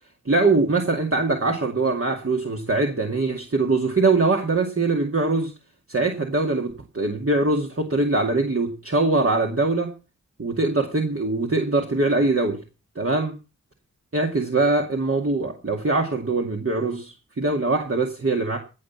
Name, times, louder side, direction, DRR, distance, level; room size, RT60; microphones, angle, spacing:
voice 1, 0.3-5.5 5.9-9.9 10.4-12.6 13.0-13.4 14.1-18.6, right 3 dB, 45° right, 1 dB, 2.2 m, -22 dB
16.5 x 6.0 x 7.2 m, 0.32 s
wide cardioid pair, 50°, 31 cm